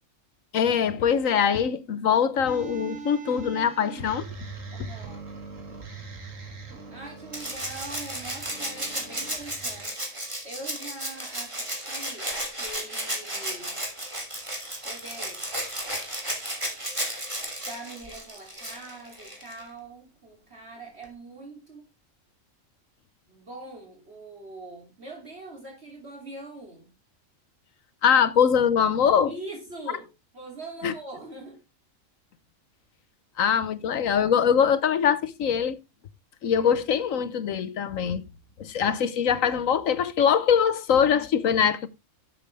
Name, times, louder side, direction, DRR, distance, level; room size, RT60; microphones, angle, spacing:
voice 1, 0.5-4.3 28.0-29.3 30.8-30.9 33.4-35.8 36.4-38.2 38.6-41.9, left 7 dB, 75° left, 1.3 m, -23 dB
sound 1, 2.5-9.8, right 4 dB, 70° right, 2.6 m, -41 dB
voice 2, 4.7-5.2 6.9-13.8 14.8-15.6 17.6-21.9 23.3-26.9 29.2-31.6, right 2 dB, 50° right, 3.2 m, -43 dB
Rattle (instrument), 7.3-19.6 21.0-21.1, right 1 dB, 20° right, 3.0 m, -34 dB
12.0 x 7.5 x 3.3 m
omnidirectional pair, 1.4 m